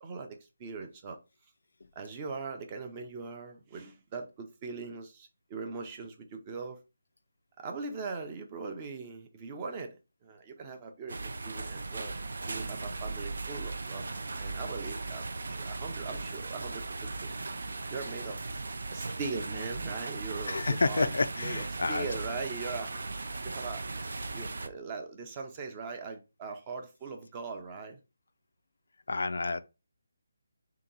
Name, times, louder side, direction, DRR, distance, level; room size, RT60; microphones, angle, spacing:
voice 1, 0.0-1.2 2.0-6.8 7.6-10.0 10.2-12.1 12.5-17.4 17.9-18.4 18.9-23.0 23.4-23.8 24.3-28.0, right 4 dB, 20° right, 0.5 m, -40 dB
sound 1, 11.1-24.7, right 3 dB, 65° right, 0.5 m, -38 dB
voice 2, 20.5-22.1 29.1-29.6, left 3 dB, 75° left, 0.4 m, -29 dB
3.5 x 2.9 x 3.8 m
hypercardioid pair, 170°, 0 cm